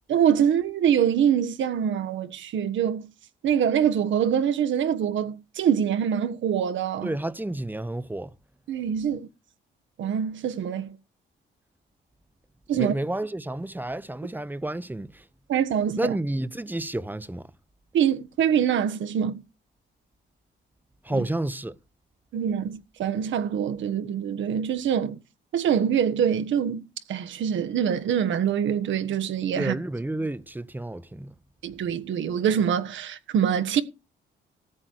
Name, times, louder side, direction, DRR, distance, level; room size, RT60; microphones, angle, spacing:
voice 1, 0.1-3.1 3.4-7.1 8.7-9.3 10.0-10.9 12.7-12.9 15.5-16.1 17.9-19.3 22.3-25.2 25.5-26.8 27.1-29.7 31.6-33.8, right 8 dB, 70° right, 1.5 m, -24 dB
voice 2, 7.0-8.3 12.7-15.3 16.0-17.5 21.0-21.8 29.6-31.3, right 1 dB, 10° right, 0.9 m, -30 dB
14.0 x 8.7 x 4.7 m
cardioid pair, 90°, 20 cm